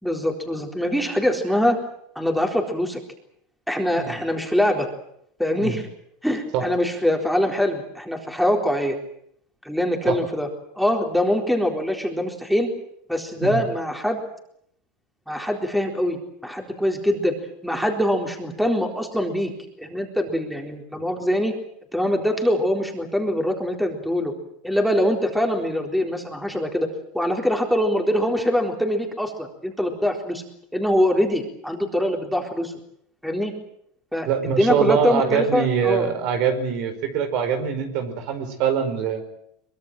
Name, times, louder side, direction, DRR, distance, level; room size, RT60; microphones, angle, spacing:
voice 1, 0.0-1.8 2.2-3.0 3.7-4.9 5.4-5.9 6.2-9.0 9.6-10.5 10.8-12.7 13.1-14.2 15.3-17.3 17.6-19.5 19.8-21.5 21.9-24.3 24.6-26.9 27.1-30.4 30.7-32.7 33.2-33.5 34.1-34.3 34.6-36.1, equal, ahead, 3 dB, 4.0 m, -23 dB
voice 2, 34.2-39.2, right 7 dB, 60° right, 9 dB, 5.0 m, -23 dB
23.5 x 22.5 x 7.8 m, 0.71 s
supercardioid pair, 130°, 0 cm